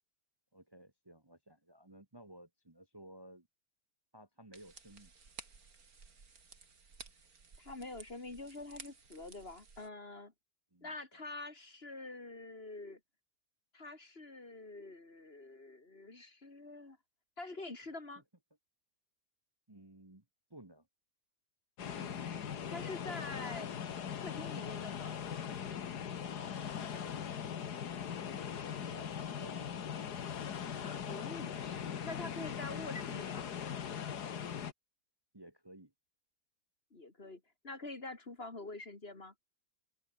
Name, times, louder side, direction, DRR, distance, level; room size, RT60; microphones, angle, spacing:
voice 1, 0.5-3.5 4.1-5.1 10.7-10.9 19.7-20.2 20.5-20.9 26.9-27.4 28.9-29.9 35.3-35.9, right 1 dB, 15° right, 1.7 m, -56 dB
sound 1, 4.5-9.9, right 4 dB, 70° right, 3.0 m, -55 dB
voice 2, 7.6-10.3 10.8-13.0 13.7-17.0 17.4-18.2 22.0-23.7 24.2-25.2 30.8-33.5 36.9-39.3, left 2 dB, 40° left, 2.9 m, -46 dB
sound 2, 21.8-34.7, left 8 dB, 90° left, 2.0 m, -40 dB
open air
omnidirectional pair, 1.7 m